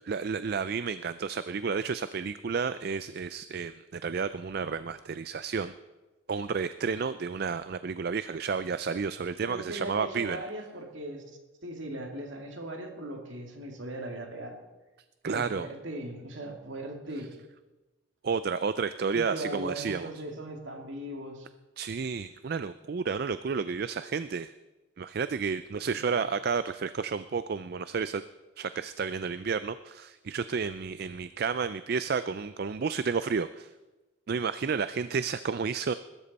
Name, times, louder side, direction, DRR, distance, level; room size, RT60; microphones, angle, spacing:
voice 1, 0.1-5.7 6.3-10.4 15.2-15.7 18.2-20.1 21.8-24.5 25.0-28.2 28.6-33.7 34.3-35.9, right 5 dB, 50° right, 13 dB, 0.4 m, -31 dB
voice 2, 9.4-11.2 11.6-14.6 15.2-17.4 19.1-21.5 25.9-26.2, right 1 dB, 65° right, 3 dB, 2.3 m, -39 dB
21.0 x 13.0 x 4.2 m, 1.1 s
head